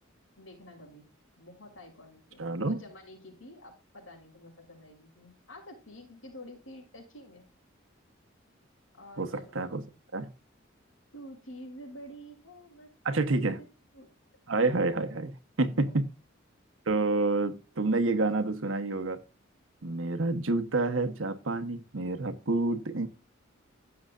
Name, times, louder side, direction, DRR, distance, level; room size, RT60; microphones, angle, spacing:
voice 1, 0.4-1.0 1.4-7.5 8.9-9.5 11.1-13.4 13.9-14.1 15.7-15.9, equal, 80° left, 6.3 m, -49 dB
voice 2, 2.4-2.8 9.2-9.3 9.5-9.8 10.1-10.3 13.0-13.6 14.5-15.3 15.6-16.0 16.9-19.2 19.8-23.1, right 2 dB, 80° right, 1.1 m, -28 dB
15.5 x 7.0 x 2.5 m
head